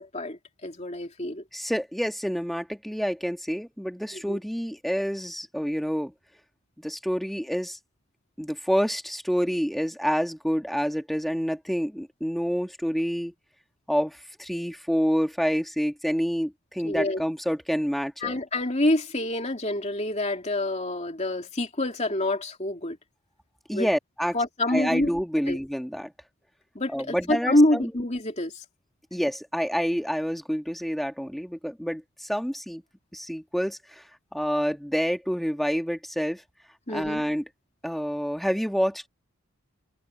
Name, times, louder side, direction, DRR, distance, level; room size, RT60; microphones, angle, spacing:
voice 1, 0.0-1.4 4.2-4.4 16.8-17.2 18.2-23.0 23.7-23.9 24.3-25.1 25.5-25.6 26.7-28.6 36.9-37.2, left 1 dB, 30° left, 2.9 m, -26 dB
voice 2, 1.5-6.1 6.8-7.8 8.4-13.3 13.9-18.4 23.7-24.4 24.7-26.1 26.9-27.9 29.1-32.8 33.1-36.4 36.9-37.5 37.8-39.1, equal, ahead, 1.4 m, -28 dB
head